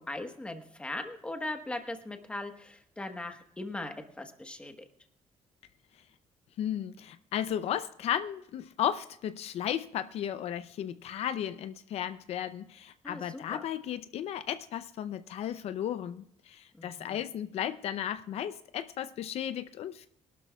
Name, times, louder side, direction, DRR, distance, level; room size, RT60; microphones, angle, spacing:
voice 1, 0.0-4.7 13.0-13.6 16.7-17.2, left 2 dB, 10° left, 5 dB, 1.2 m, -39 dB
voice 2, 6.6-20.1, left 10 dB, 60° left, 12 dB, 0.5 m, -34 dB
23.0 x 12.0 x 2.3 m, 0.73 s
cardioid pair, 175°, 12 cm